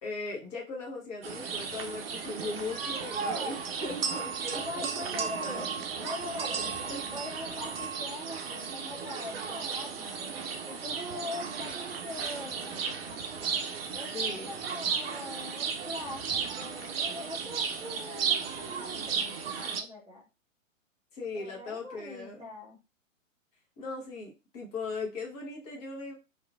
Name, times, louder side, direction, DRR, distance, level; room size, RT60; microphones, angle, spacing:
voice 1, 0.0-5.7 6.0-6.1 6.4-7.0 13.9-14.6 21.1-22.5 23.8-26.1, left 3 dB, 30° left, -1 dB, 0.9 m, -39 dB
sound 1, 1.2-19.8, right 6 dB, 50° right, 0.5 m, -34 dB
voice 2, 4.6-5.7 5.9-10.3 10.6-13.2 13.9-20.2 21.3-22.8, left 2 dB, 10° right, -5 dB, 0.7 m, -42 dB
2.9 x 2.4 x 2.3 m, 0.28 s
figure-of-eight pair, 115°, 40 cm